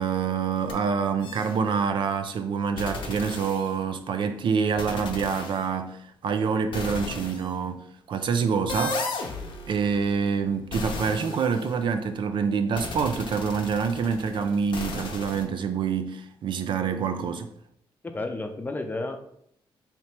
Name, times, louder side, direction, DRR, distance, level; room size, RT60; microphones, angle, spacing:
voice 1, 0.0-9.0 9.7-17.5, right 6 dB, 60° right, 0.4 m, -26 dB
sound 1, 0.6-0.7 1.2-1.6 2.8-4.0 4.8-5.6 6.7-7.5 8.7-12.1 12.8-15.4, left 3 dB, 65° left, 0.7 m, -35 dB
voice 2, 18.0-19.2, left 2 dB, 20° left, 0.5 m, -31 dB
3.3 x 2.8 x 4.3 m
cardioid pair, 110°, 9 cm